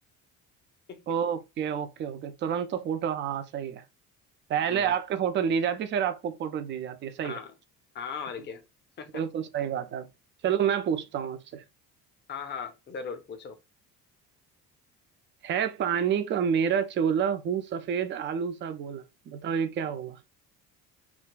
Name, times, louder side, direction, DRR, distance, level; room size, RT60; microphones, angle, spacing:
voice 1, 1.1-3.8 4.5-7.4 9.1-10.1 10.4-11.6 15.4-20.2, right 8 dB, 25° right, 0.3 m, -29 dB
voice 2, 4.6-4.9 7.2-7.5 7.9-8.6 9.0-9.2 12.3-13.6, left 6 dB, 25° left, 0.6 m, -38 dB
3.3 x 2.3 x 2.2 m
figure-of-eight pair, 50°, 48 cm